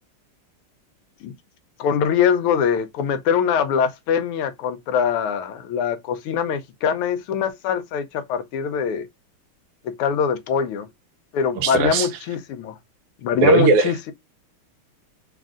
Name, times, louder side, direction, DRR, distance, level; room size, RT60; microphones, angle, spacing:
voice 1, 1.8-9.1 9.8-10.9 11.3-12.7 13.2-14.1, left 7 dB, 80° left, 1.6 m, -23 dB
voice 2, 11.6-12.1 13.4-13.9, right 4 dB, 90° right, 1.7 m, -17 dB
4.0 x 2.5 x 3.6 m
omnidirectional pair, 2.4 m